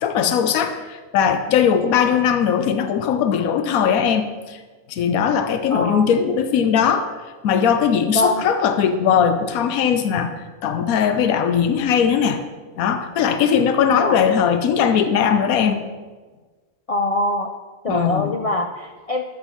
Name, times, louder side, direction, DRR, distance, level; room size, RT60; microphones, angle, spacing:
voice 1, 0.0-4.6 4.9-7.1 7.4-12.4 12.8-15.8 17.9-18.3, left 7 dB, 85° left, 9 dB, 1.1 m, -19 dB
voice 2, 5.7-6.1 8.1-8.4 13.9-14.2 16.9-17.5 17.8-19.2, left 1 dB, 70° left, 3 dB, 0.3 m, -23 dB
13.0 x 5.4 x 5.6 m, 1.3 s
omnidirectional pair, 1.4 m